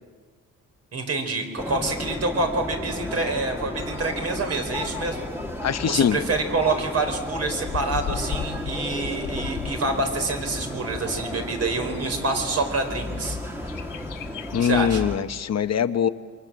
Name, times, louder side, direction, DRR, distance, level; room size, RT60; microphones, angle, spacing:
voice 1, 0.9-5.2 5.8-13.4 14.6-15.0, right 3 dB, 50° right, 5 dB, 4.6 m, -27 dB
sound 1, 1.6-15.2, left 1 dB, 5° right, 2.4 m, -33 dB
Bird, 3.8-14.8, left 8 dB, 70° left, 1.4 m, -39 dB
voice 2, 5.6-6.2 14.5-16.1, left 8 dB, 50° left, 10 dB, 0.9 m, -22 dB
28.5 x 24.5 x 7.6 m, 1.5 s
cardioid pair, 135°, 33 cm